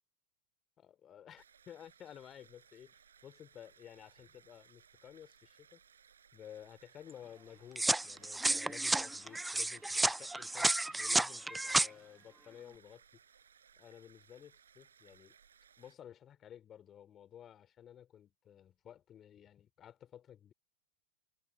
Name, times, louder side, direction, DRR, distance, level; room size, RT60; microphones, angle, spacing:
voice 1, 0.8-3.0 3.2-5.8 6.3-13.0 13.8-15.4 15.8-20.5, left 10 dB, 25° left, 4.0 m, -54 dB
sound 1, 1.4-16.0, right 7 dB, 70° right, 6.8 m, -64 dB
sound 2, 7.8-11.9, right 2 dB, 5° right, 0.8 m, -32 dB
figure-of-eight pair, 90°, 0 cm